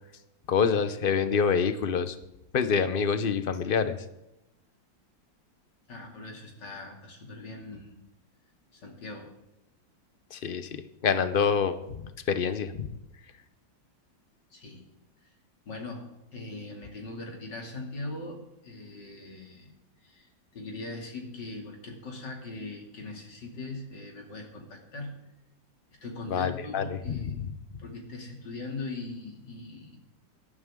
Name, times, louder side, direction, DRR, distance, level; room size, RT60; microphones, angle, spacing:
voice 1, 0.5-2.2 2.5-4.0 10.3-12.9 26.3-27.5, left 6 dB, 45° left, 11 dB, 0.7 m, -27 dB
voice 2, 5.9-8.0 8.7-9.3 14.5-14.8 15.2-15.3 15.6-16.0 16.3-19.7 20.0-25.2 26.0-27.3 27.8-30.0, left 2 dB, 65° left, 1 dB, 3.3 m, -40 dB
18.5 x 13.0 x 3.8 m, 0.92 s
omnidirectional pair, 2.1 m